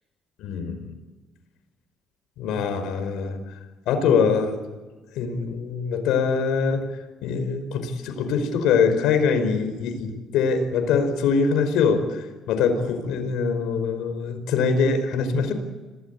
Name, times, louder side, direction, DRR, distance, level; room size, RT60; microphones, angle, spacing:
voice 1, 0.4-0.9 2.4-3.4 3.9-4.6 5.1-6.8 7.2-15.5, left 5 dB, 80° left, 8 dB, 5.1 m, -23 dB
26.5 x 18.0 x 8.5 m, 1.3 s
cardioid pair, 110°, 0 cm